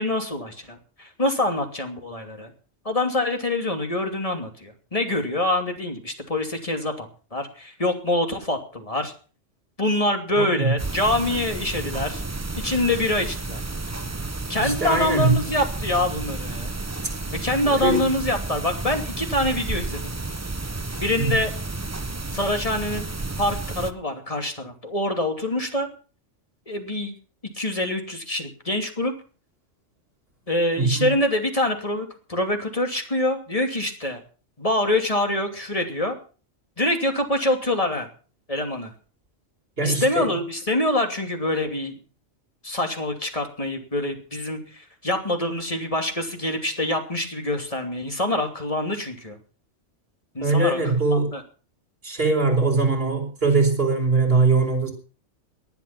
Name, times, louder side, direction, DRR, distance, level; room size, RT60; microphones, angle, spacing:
voice 1, 0.0-2.5 2.8-9.1 9.8-12.2 12.6-13.6 14.5-16.7 17.3-20.1 21.0-21.5 22.3-23.1 23.4-25.9 26.7-27.2 27.5-29.1 30.5-34.2 34.6-36.1 36.8-38.1 38.5-38.9 39.8-42.0 42.6-49.4 50.3-50.8 51.1-51.4, left 1 dB, 30° left, 5 dB, 2.9 m, -25 dB
voice 2, 10.3-10.7 14.6-15.4 17.6-18.0 21.2-21.3 30.8-31.1 39.8-40.3 50.4-51.3 52.0-54.9, right 3 dB, 50° right, 2 dB, 4.8 m, -21 dB
sound 1, 10.8-23.9, right 3 dB, 15° right, 0.7 m, -31 dB
19.5 x 10.5 x 5.9 m, 0.38 s
omnidirectional pair, 1.2 m